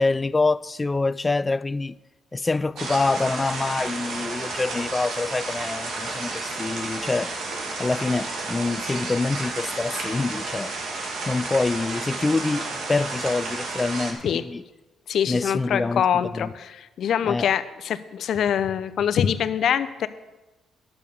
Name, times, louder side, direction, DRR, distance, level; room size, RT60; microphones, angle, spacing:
voice 1, 0.0-1.9 2.3-7.3 7.8-10.7 11.3-14.6 15.3-16.5 17.3-17.5, left 3 dB, 20° left, 0.3 m, -26 dB
sound 1, 2.8-14.1, right 3 dB, 70° right, 1.9 m, -32 dB
voice 2, 15.1-20.1, left 9 dB, 65° left, 0.6 m, -24 dB
10.5 x 7.0 x 6.7 m
cardioid pair, 90°, 0 cm